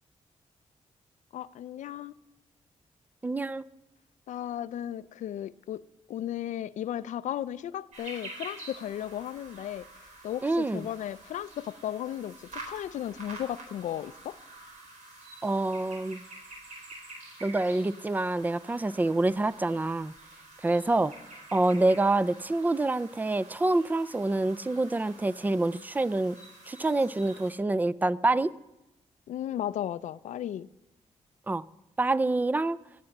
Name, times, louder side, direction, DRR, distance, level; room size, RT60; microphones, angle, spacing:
voice 1, 1.3-2.1 4.3-5.8 6.1-9.9 10.2-14.4 29.3-30.7, left 11 dB, 85° left, 17 dB, 0.4 m, -35 dB
voice 2, 3.2-3.6 10.4-10.9 15.4-16.2 17.4-20.1 20.6-21.1 21.5-26.4 26.7-28.5 31.5-31.6 32.0-32.8, right 2 dB, 15° right, 19 dB, 0.4 m, -26 dB
sound 1, 7.9-27.5, right 2 dB, 80° right, 4.1 m, -48 dB
17.5 x 7.7 x 7.1 m, 0.94 s
cardioid pair, 105°, 12 cm